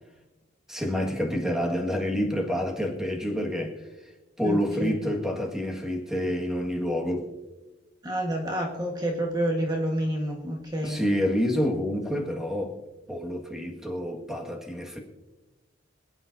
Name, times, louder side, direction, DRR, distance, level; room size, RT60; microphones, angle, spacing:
voice 1, 0.7-3.7 4.4-7.3 10.8-12.8 13.1-15.0, equal, 5° right, 1.7 m, -28 dB
voice 2, 4.4-5.1 8.0-11.0, right 1 dB, 20° right, 1.4 m, -29 dB
26.5 x 9.1 x 2.7 m
head